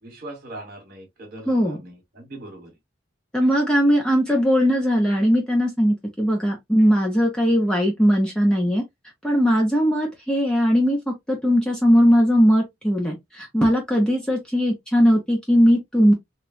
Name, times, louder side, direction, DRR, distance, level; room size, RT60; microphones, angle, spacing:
voice 1, 0.0-2.8, right 1 dB, 50° right, 1.3 m, -40 dB
voice 2, 1.5-1.8 3.3-8.8 9.2-16.1, equal, 5° left, 0.6 m, -19 dB
3.0 x 2.2 x 2.5 m
head